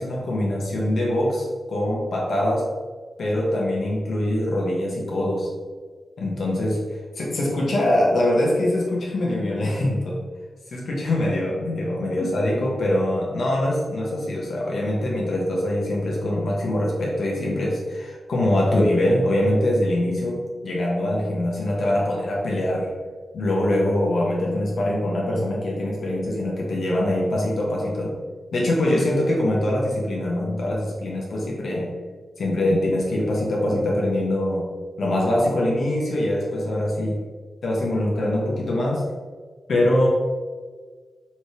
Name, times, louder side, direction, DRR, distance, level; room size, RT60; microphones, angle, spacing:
voice 1, 0.0-2.7 3.2-5.5 6.2-6.8 7.1-10.2 10.7-22.9 23.3-28.1 28.5-31.9 32.4-34.7 35.0-37.2 37.6-39.0 39.7-40.1, left 1 dB, 70° left, -3 dB, 1.2 m, -23 dB
7.2 x 3.4 x 4.8 m, 1.5 s
wide cardioid pair, 125°, 0 cm